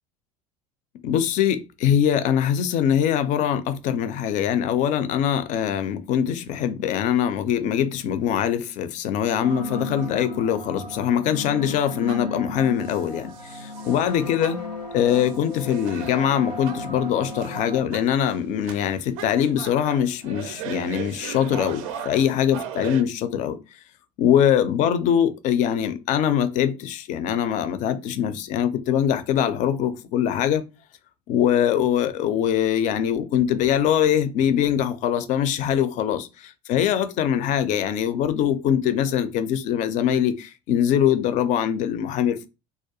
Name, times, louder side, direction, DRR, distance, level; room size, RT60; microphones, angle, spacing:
voice 1, 1.0-14.6 14.9-23.6 24.2-30.6 31.3-42.5, left 9 dB, 40° left, 0.4 m, -23 dB
sound 1, 9.4-17.9, left 2 dB, 90° left, 0.7 m, -35 dB
sound 2, 11.8-12.4 12.8-14.1 14.4-16.9 17.3-17.6 17.9-23.0, right 8 dB, 60° right, 0.4 m, -38 dB
2.3 x 2.1 x 2.7 m
figure-of-eight pair, 70°, 20 cm